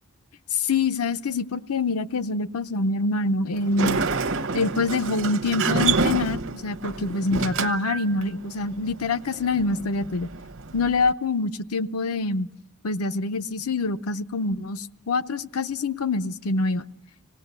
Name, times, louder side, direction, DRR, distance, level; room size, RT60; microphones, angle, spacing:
voice 1, 0.5-4.0 4.5-10.3 10.7-12.5 12.8-16.9, left 3 dB, 80° left, 11 dB, 0.8 m, -25 dB
Sliding door, 3.5-11.1, right 4 dB, 60° right, 1.0 m, -28 dB
26.0 x 18.0 x 8.2 m, 0.80 s
head